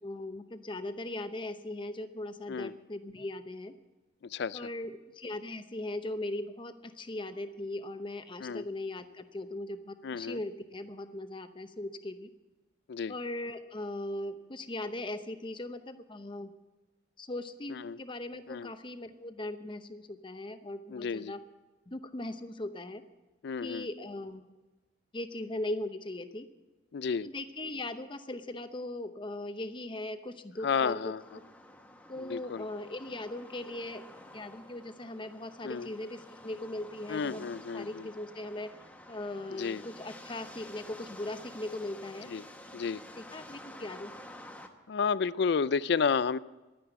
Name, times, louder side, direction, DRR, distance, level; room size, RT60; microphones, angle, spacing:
voice 1, 0.0-3.7 4.5-12.3 13.1-16.5 17.2-21.4 21.9-23.0 23.6-24.5 25.1-26.5 27.2-31.1 32.1-34.0 34.3-37.4 37.7-38.7 39.1-42.3 43.2-44.1, left 1 dB, 25° left, 10 dB, 0.8 m, -39 dB
voice 2, 10.0-10.4 12.9-13.1 17.9-18.0 18.5-18.7 20.9-21.3 23.4-23.9 26.9-27.3 30.6-31.2 32.2-32.6 35.6-35.9 37.1-38.1 39.6-39.8 42.3-42.4 42.7-43.0 44.9-46.4, left 5 dB, 65° left, 18 dB, 0.4 m, -31 dB
sound 1, 31.2-44.7, left 1 dB, 10° left, 1.1 m, -50 dB
12.0 x 9.6 x 8.1 m, 1.2 s
head